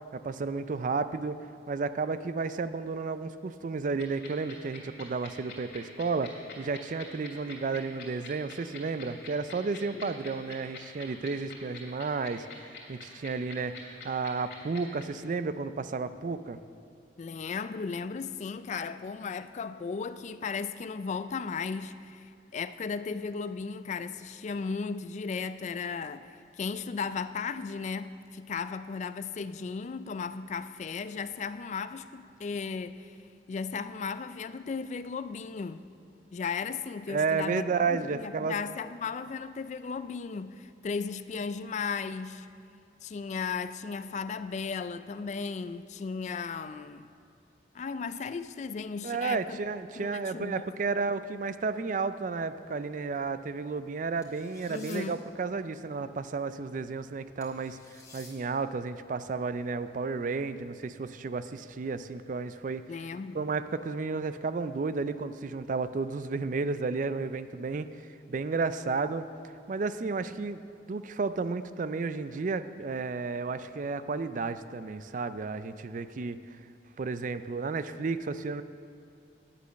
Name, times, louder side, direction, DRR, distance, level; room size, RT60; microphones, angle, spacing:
voice 1, 0.1-1.4 1.7-16.6 37.1-38.6 49.0-62.8 63.3-69.3 69.7-76.4 77.0-78.6, right 4 dB, 45° right, 0.4 m, -32 dB
sound 1, 4.0-15.0, left 6 dB, 60° left, 2.7 m, -44 dB
voice 2, 17.2-33.2 33.5-35.8 36.3-42.5 43.0-47.1 47.7-49.6 50.0-50.7 54.7-55.2 62.9-63.4, left 5 dB, 40° left, 0.3 m, -36 dB
sound 2, 54.2-55.0 57.4-58.3, left 3 dB, 20° left, 2.4 m, -52 dB
10.5 x 8.2 x 6.4 m
head